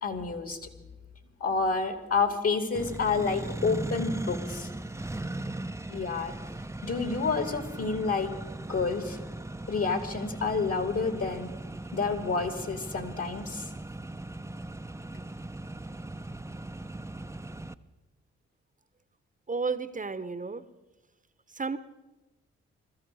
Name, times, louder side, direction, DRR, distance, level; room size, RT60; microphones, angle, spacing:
voice 1, 0.0-0.7 1.4-4.7 5.9-6.3 6.8-8.3 8.7-9.2 9.7-11.5 11.9-13.7, left 4 dB, 50° left, 7 dB, 2.3 m, -29 dB
Accelerating revving vroom, 2.7-17.7, right 2 dB, 10° right, 0.7 m, -38 dB
voice 2, 19.5-20.6 21.5-21.8, right 4 dB, 25° right, 14 dB, 1.0 m, -32 dB
21.0 x 14.0 x 4.9 m, 1.1 s
hypercardioid pair, 40°, 30 cm